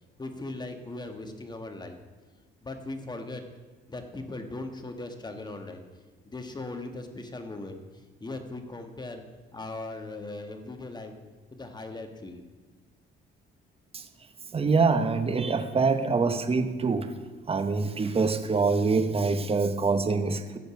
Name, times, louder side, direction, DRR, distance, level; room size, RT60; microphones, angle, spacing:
voice 1, 0.2-2.0 2.6-3.5 3.9-5.8 6.3-7.8 8.2-9.2 9.5-11.2 11.5-12.4, left 2 dB, 20° left, 6 dB, 1.5 m, -38 dB
voice 2, 14.5-17.1 17.5-20.6, right 4 dB, 30° right, 9 dB, 1.0 m, -25 dB
15.0 x 5.2 x 7.0 m, 1.3 s
cardioid pair, 90°, 20 cm